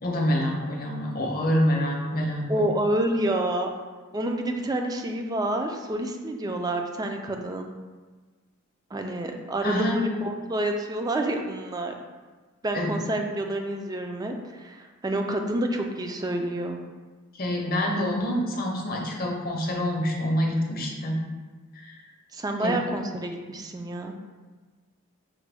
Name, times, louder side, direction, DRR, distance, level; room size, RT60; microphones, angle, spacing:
voice 1, 0.0-2.7 9.6-10.0 12.7-12.9 17.3-21.2 21.8-21.9 22.6-22.7, equal, 45° left, 0 dB, 0.7 m, -26 dB
voice 2, 2.5-3.7 4.1-7.7 8.9-11.9 12.6-16.8 22.3-24.1, right 1 dB, 20° right, 4 dB, 0.3 m, -28 dB
6.1 x 2.2 x 3.3 m, 1.3 s
head